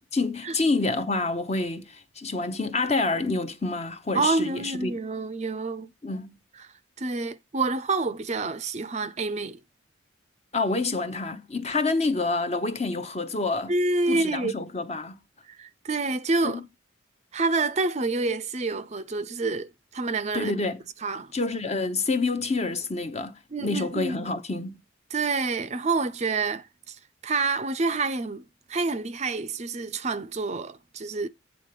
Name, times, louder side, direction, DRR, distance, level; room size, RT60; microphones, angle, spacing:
voice 1, 0.1-5.0 6.0-6.3 10.5-13.7 14.1-15.2 16.4-16.6 20.3-20.8 21.3-24.8, left 3 dB, 30° left, 0.9 m, -28 dB
voice 2, 4.1-5.9 6.6-6.7 7.0-9.6 13.7-14.5 15.5-16.6 17.3-20.5 21.0-21.3 23.5-24.3 25.1-27.0 27.2-28.4 28.7-31.3, right 3 dB, 35° right, 0.5 m, -28 dB
9.1 x 3.8 x 6.7 m
head